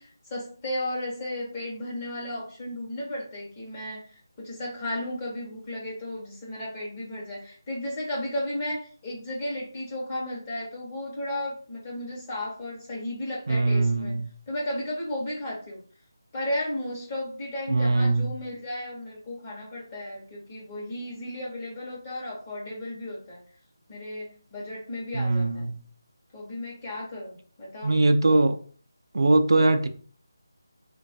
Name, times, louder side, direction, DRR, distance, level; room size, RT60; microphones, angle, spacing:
voice 1, 0.0-14.2 14.5-15.8 16.3-23.4 23.9-25.7 26.3-27.9, left 1 dB, 20° left, 0.8 m, -34 dB
voice 2, 13.5-14.2 17.7-18.3 25.1-25.7 27.8-28.6 29.1-29.9, right 2 dB, 75° right, 0.4 m, -21 dB
3.1 x 2.3 x 2.6 m
figure-of-eight pair, 170°, 2 cm